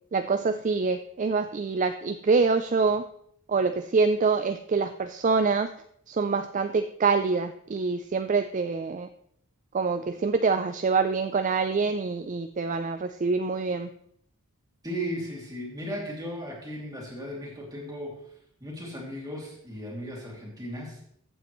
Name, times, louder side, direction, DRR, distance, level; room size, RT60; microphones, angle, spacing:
voice 1, 0.1-3.0 3.5-5.7 6.1-9.1 9.7-13.9, right 4 dB, 35° right, 9 dB, 0.3 m, -25 dB
voice 2, 14.8-21.0, equal, 15° right, -2 dB, 2.6 m, -36 dB
14.5 x 8.2 x 3.1 m, 0.69 s
head